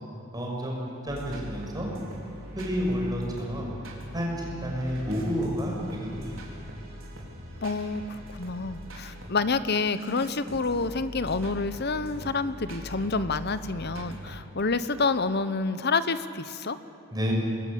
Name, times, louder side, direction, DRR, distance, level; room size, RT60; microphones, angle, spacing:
voice 1, 0.3-0.8 1.0-1.9 2.5-3.2 3.5-3.7 4.1-6.4 17.1-17.3, equal, 20° right, -1 dB, 5.7 m, -30 dB
sound 1, 1.1-9.3 9.9-14.4, equal, 70° right, 4.4 m, -42 dB
voice 2, 7.6-16.8, left 4 dB, 50° left, 13 dB, 1.0 m, -28 dB
26.0 x 21.5 x 8.7 m, 2.7 s
head